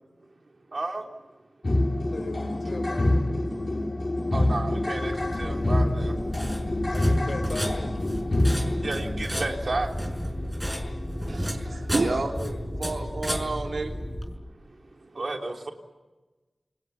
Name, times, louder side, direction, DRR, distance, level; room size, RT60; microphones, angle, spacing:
voice 1, 0.7-1.1 4.3-6.5 8.3-11.8 14.4-14.5 14.9-15.7, right 2 dB, 65° right, 3 dB, 3.3 m, -34 dB
sound 1, 1.6-14.3, left 1 dB, 45° left, 3.2 m, -28 dB
voice 2, 2.0-3.2 6.9-8.0 12.0-12.6, left 2 dB, 70° left, 6 dB, 6.2 m, -38 dB
sound 2, 5.1-14.4, equal, 10° right, 5.8 m, -33 dB
voice 3, 11.3-12.3 12.8-14.0, right 3 dB, 80° right, 3 dB, 3.0 m, -30 dB
28.5 x 21.0 x 7.2 m, 1.2 s
cardioid pair, 45°, 0 cm